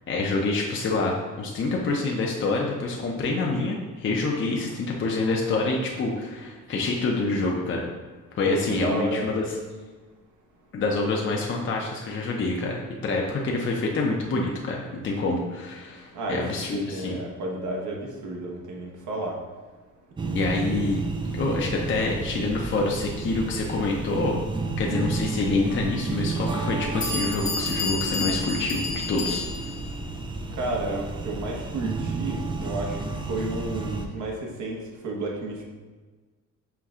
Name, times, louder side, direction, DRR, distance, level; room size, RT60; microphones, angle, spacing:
voice 1, 0.1-7.9 8.3-9.6 10.7-17.2 20.3-21.0 21.3-24.4 24.8-29.7, left 3 dB, 40° left, -1 dB, 0.6 m, -27 dB
voice 2, 8.4-9.3 16.1-16.5 16.7-19.4 20.2-20.9 30.6-33.0 33.3-34.8 35.0-35.6, right 2 dB, 75° right, 0 dB, 1.0 m, -31 dB
sound 1, 20.2-34.1, right 3 dB, 15° right, 0.4 m, -31 dB
Bell, 26.6-26.7 27.0-29.8, left 3 dB, 60° left, 1.3 m, -30 dB
5.7 x 2.3 x 3.6 m, 1.4 s
cardioid pair, 90°, 30 cm